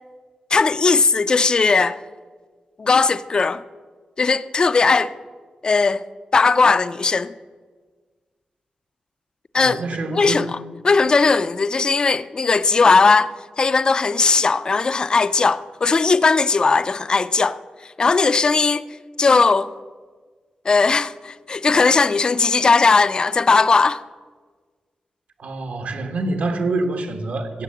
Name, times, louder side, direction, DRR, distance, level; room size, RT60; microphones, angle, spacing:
voice 1, 0.5-2.0 2.8-3.6 4.2-5.1 5.6-6.0 6.3-7.3 9.5-9.8 10.1-10.5 10.8-17.6 18.0-18.8 19.2-19.7 20.7-24.0, left 4 dB, 30° left, 0.4 m, -18 dB
voice 2, 9.5-10.5 25.4-27.6, right 2 dB, 75° right, 1.5 m, -26 dB
16.0 x 7.6 x 7.8 m
wide cardioid pair, 180°, 3 cm